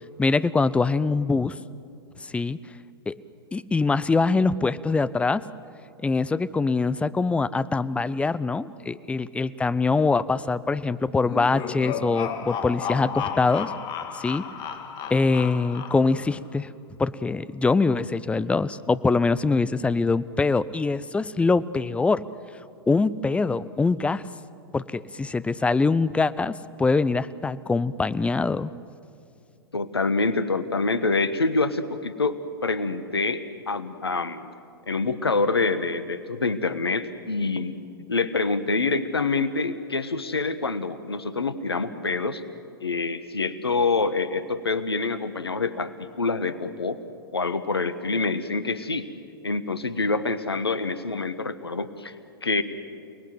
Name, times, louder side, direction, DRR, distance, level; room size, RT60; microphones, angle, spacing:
voice 1, 0.2-1.6 2.2-2.6 3.1-3.2 3.5-5.4 6.0-13.7 14.1-14.4 15.1-16.7 17.0-22.2 22.9-24.2 24.7-26.5 26.8-28.7, left 4 dB, 10° left, 17 dB, 0.6 m, -23 dB
sound 1, 11.2-16.3, left 7 dB, 35° left, 1.9 m, -33 dB
voice 2, 29.7-34.5 34.9-37.8 38.1-42.4 42.8-47.0 47.3-49.1 49.4-52.1 52.4-52.6, left 3 dB, 85° left, 12 dB, 1.3 m, -26 dB
29.5 x 19.5 x 7.9 m, 2.5 s
figure-of-eight pair, 100°, 13 cm